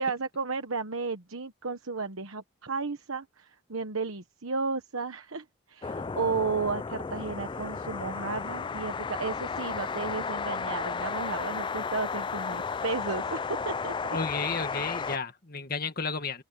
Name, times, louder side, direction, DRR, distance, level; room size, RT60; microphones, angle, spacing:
voice 1, 0.0-13.9, right 4 dB, 85° right, 1.2 m, -33 dB
sound 1, 5.8-15.2, left 5 dB, 20° left, 0.3 m, -33 dB
voice 2, 14.1-16.4, left 4 dB, 45° left, 2.0 m, -32 dB
head